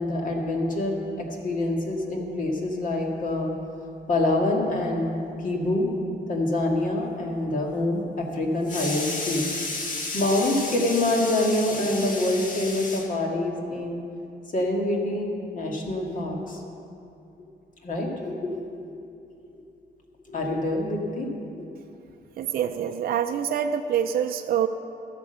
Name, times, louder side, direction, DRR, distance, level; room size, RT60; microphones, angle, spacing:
voice 1, 0.0-3.5 4.1-5.9 6.3-14.0 14.5-16.6 17.8-19.0 20.3-21.3 21.6-21.7, left 2 dB, 50° left, 0 dB, 2.0 m, -26 dB
voice 2, 22.4-24.7, right 9 dB, 60° right, 6 dB, 0.5 m, -25 dB
13.5 x 8.6 x 6.7 m, 2.6 s
wide cardioid pair, 150°, 17 cm